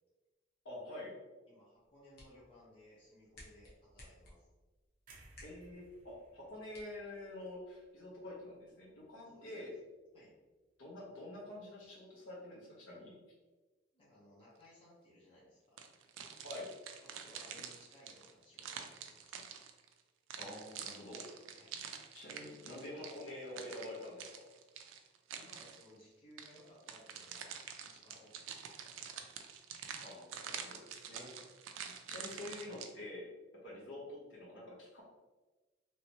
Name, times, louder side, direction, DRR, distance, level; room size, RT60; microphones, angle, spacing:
voice 1, 0.6-1.1 5.4-9.7 10.8-13.1 16.4-16.7 20.4-21.2 22.1-24.4 30.0-31.3 32.1-33.3 33.6-35.0, left 1 dB, 85° left, -5 dB, 1.1 m, -47 dB
voice 2, 1.5-4.4 9.2-9.6 10.1-10.4 13.9-15.8 17.0-19.4 21.5-21.8 25.3-27.5 27.8-29.1 31.1-31.4, left 1 dB, 30° left, -8 dB, 1.0 m, -61 dB
sound 1, 1.7-7.7, left 1 dB, 55° left, 1.0 m, -61 dB
sound 2, 5.1-9.1 9.4-9.7, right 2 dB, 45° right, 0.7 m, -63 dB
sound 3, 15.8-19.9 20.3-25.9 26.4-32.9, right 7 dB, 90° right, 0.4 m, -47 dB
3.0 x 2.7 x 3.0 m, 1.2 s
head